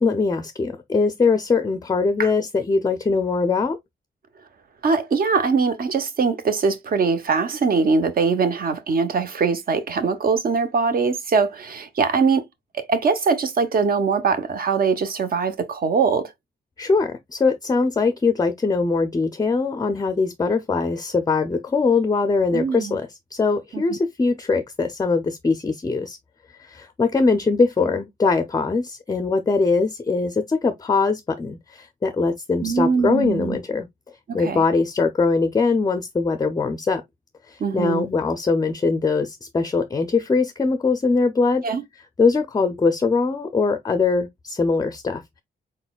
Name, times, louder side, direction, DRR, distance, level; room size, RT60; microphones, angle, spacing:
voice 1, 0.0-3.8 16.8-26.2 26.6-33.9 34.3-37.0 37.5-41.6 42.2-45.4, left 4 dB, 20° left, 0.4 m, -22 dB
voice 2, 4.8-12.4 12.7-16.3 22.5-23.0 23.7-24.0 32.6-33.6 34.3-34.6 37.6-38.1 41.6-41.8, right 5 dB, 50° right, 0.8 m, -22 dB
4.4 x 4.0 x 2.2 m
wide cardioid pair, 135°, 19 cm